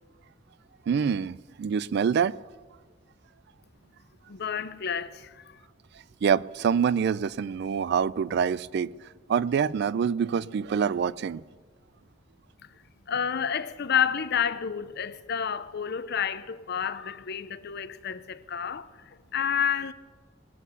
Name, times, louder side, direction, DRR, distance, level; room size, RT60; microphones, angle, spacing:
voice 1, 0.9-2.4 6.2-8.9 9.3-11.4, right 7 dB, 60° right, 0.3 m, -26 dB
voice 2, 4.3-5.6 12.6-12.7 13.1-19.9, left 7 dB, 60° left, 0.6 m, -30 dB
19.0 x 8.3 x 7.0 m
head